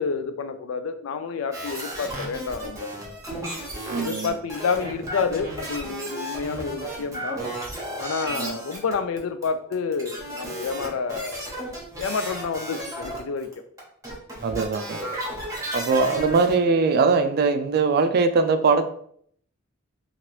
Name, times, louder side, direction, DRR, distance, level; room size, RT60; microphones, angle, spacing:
voice 1, 0.0-2.9 3.9-7.4 8.0-11.5 12.0-13.5, left 5 dB, 75° left, 9 dB, 0.4 m, -29 dB
sound 1, 1.5-9.2 9.4-13.5 13.8-16.6, right 1 dB, 15° right, 0.8 m, -34 dB
voice 2, 3.9-4.3 8.3-8.6 14.4-15.0 15.7-18.9, right 4 dB, 50° right, 8 dB, 0.3 m, -21 dB
2.9 x 2.5 x 3.0 m, 0.63 s
head